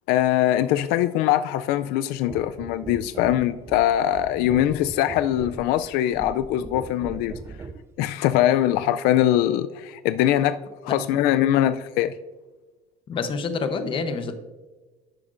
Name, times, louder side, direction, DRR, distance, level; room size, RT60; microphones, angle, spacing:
voice 1, 0.1-7.3 8.0-12.1, left 12 dB, 85° left, 0.4 m, -22 dB
sound 1, 2.3-7.9 8.7-8.9, right 4 dB, 15° right, 0.4 m, -39 dB
voice 2, 13.1-14.3, left 4 dB, 35° left, 0.8 m, -27 dB
11.0 x 7.9 x 2.5 m
cardioid pair, 145°, 16 cm